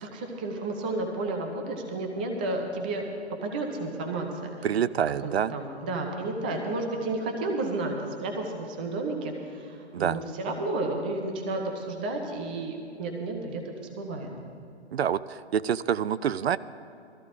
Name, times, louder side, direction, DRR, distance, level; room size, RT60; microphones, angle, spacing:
voice 1, 0.0-3.0 3.4-4.5 5.2-7.9 8.2-13.6 14.0-14.3, right 2 dB, 10° right, 2 dB, 0.4 m, -32 dB
voice 2, 4.6-5.5 9.9-10.2 14.9-16.6, right 8 dB, 65° right, 16 dB, 0.5 m, -27 dB
19.0 x 14.0 x 3.6 m, 2.6 s
hypercardioid pair, 140°, 34 cm